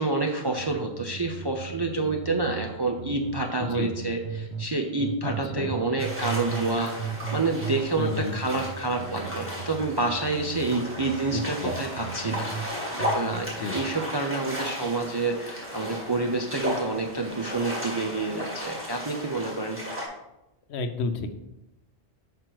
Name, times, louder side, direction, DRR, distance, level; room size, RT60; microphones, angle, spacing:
voice 1, 0.0-12.9 13.1-19.8, right 3 dB, 35° right, 2 dB, 0.4 m, -28 dB
sound 1, 0.6-4.7 5.0-6.7 7.0-12.7 13.0-13.5, right 7 dB, 65° right, 0.9 m, -36 dB
voice 2, 3.6-3.9 5.2-5.7 8.0-8.3 11.3-11.7 13.5-13.8 20.7-21.3, left 3 dB, 70° left, 8 dB, 0.9 m, -31 dB
sound 2, 6.0-20.1, equal, 10° right, 1.7 m, -35 dB
6.0 x 5.0 x 4.5 m, 0.92 s
omnidirectional pair, 1.2 m